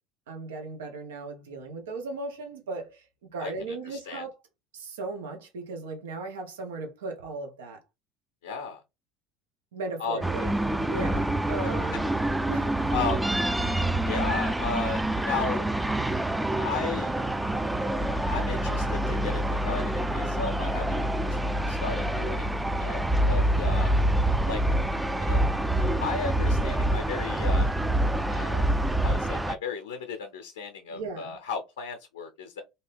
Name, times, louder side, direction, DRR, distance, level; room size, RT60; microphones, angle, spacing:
voice 1, 0.3-4.3 4.7-7.8 9.7-10.6 10.9-12.1 12.5-12.9 30.9-31.4, right 3 dB, 85° right, 0.8 m, -37 dB
voice 2, 3.4-4.3 8.4-8.8 10.0-10.2 11.6-12.0 12.9-13.3 14.0-15.0 15.3-16.0 16.5-17.1 18.0-21.0 21.7-22.5 22.8-23.0 23.3-24.0 24.5-24.6 25.2-25.5 25.8-27.7 28.3-28.6 29.0-32.6, left 5 dB, 90° left, 0.5 m, -35 dB
sound 1, 10.2-29.6, right 1 dB, 10° right, 0.3 m, -26 dB
2.8 x 2.6 x 3.4 m
hypercardioid pair, 80°, 0 cm